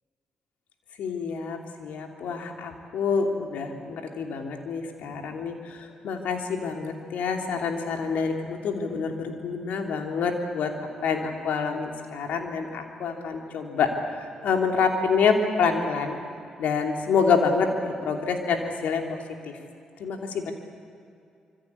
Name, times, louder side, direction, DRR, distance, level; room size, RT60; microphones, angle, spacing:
voice 1, 1.0-10.7 11.0-13.9 14.2-16.2 16.6-19.6 20.0-20.5, left 5 dB, 70° left, 3 dB, 3.0 m, -27 dB
25.5 x 24.0 x 8.4 m, 2.5 s
hypercardioid pair, 40°, 3 cm